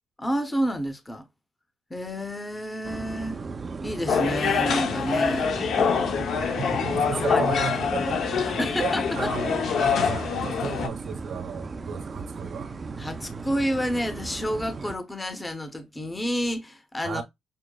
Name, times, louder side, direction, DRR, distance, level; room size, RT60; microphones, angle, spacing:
voice 1, 0.2-1.3 1.9-3.4 3.8-5.5 7.1-7.4 8.0-8.1 8.6-9.3 13.0-17.2, equal, 15° left, 0.7 m, -29 dB
sound 1, 2.8-15.0, right 4 dB, 35° right, 0.4 m, -36 dB
sound 2, 4.1-10.9, left 6 dB, 65° left, 0.6 m, -25 dB
voice 2, 6.6-12.7 17.0-17.2, right 7 dB, 75° right, 1.0 m, -34 dB
6.1 x 2.0 x 2.2 m
cardioid pair, 80°, 0 cm